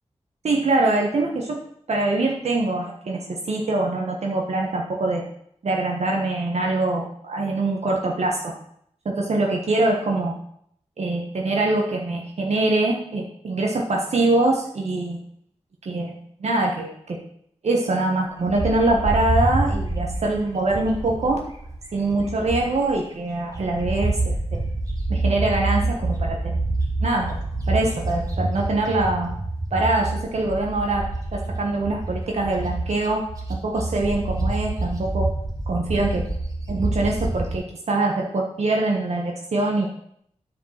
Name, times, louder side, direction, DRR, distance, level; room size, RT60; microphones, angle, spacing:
voice 1, 0.4-1.6 1.9-3.2 3.5-5.2 5.6-8.5 9.0-10.3 11.0-15.2 15.8-17.2 17.6-21.4 21.9-24.6 25.1-26.6 27.0-29.3 29.7-31.0 31.3-33.2 33.5-35.3 35.7-36.2 36.7-39.9, right 2 dB, 70° right, 0 dB, 1.3 m, -23 dB
Bird, 18.5-23.0 23.3-37.5, right 2 dB, 30° right, 2.0 m, -27 dB
9.3 x 5.1 x 5.8 m, 0.70 s
wide cardioid pair, 110°, 12 cm